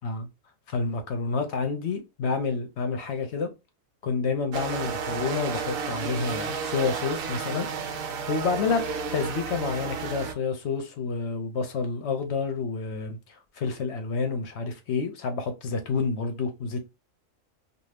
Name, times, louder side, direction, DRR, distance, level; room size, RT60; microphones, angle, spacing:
voice 1, 0.7-3.5 4.0-7.7 8.0-8.8 9.1-13.2 13.6-16.8, left 4 dB, 60° left, 0.9 m, -29 dB
sound 1, 4.5-10.3, right 6 dB, 85° right, 1.0 m, -32 dB
2.6 x 2.4 x 3.3 m
omnidirectional pair, 1.4 m